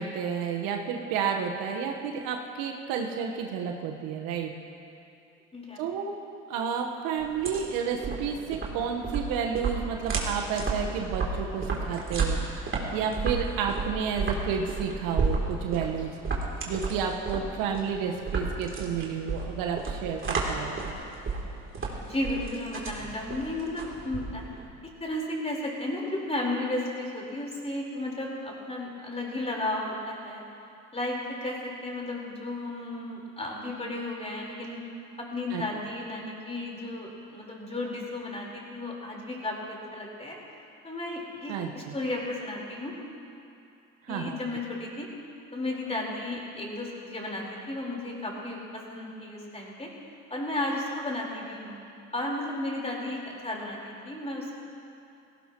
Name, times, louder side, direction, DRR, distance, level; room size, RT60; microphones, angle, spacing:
voice 1, 0.0-4.5 5.8-6.1 6.5-16.1 16.7-20.9 35.5-35.6 41.5-41.9 44.0-44.4, right 7 dB, 65° right, 2 dB, 1.3 m, -31 dB
sound 1, 7.2-24.7, right 4 dB, 35° right, 3.1 m, -32 dB
voice 2, 22.1-24.4 25.0-30.4 30.9-34.8 35.2-40.3 40.8-42.9 44.1-45.1 45.5-49.9 50.3-51.8 52.1-54.6, left 1 dB, 15° left, -2 dB, 4.2 m, -34 dB
18.0 x 17.0 x 3.0 m, 2.7 s
hypercardioid pair, 65°, 37 cm